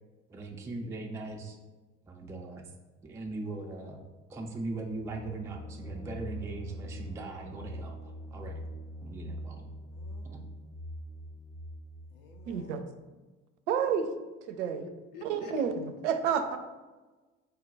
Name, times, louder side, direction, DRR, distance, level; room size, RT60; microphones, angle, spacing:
voice 1, 0.3-1.6 2.0-2.7 3.0-4.0 4.3-8.6 9.0-9.7 10.3-10.4, right 2 dB, 10° right, 1 dB, 0.3 m, -40 dB
sound 1, 4.9-12.6, equal, 85° left, 0.9 m, -43 dB
voice 2, 9.9-10.5 12.1-12.8 14.8-15.5, left 4 dB, 60° left, 2 dB, 0.6 m, -49 dB
voice 3, 12.5-12.8 13.7-14.1 14.5-14.8 15.2-16.6, right 7 dB, 70° right, 8 dB, 0.5 m, -30 dB
4.0 x 2.2 x 3.7 m, 1.2 s
figure-of-eight pair, 55°, 37 cm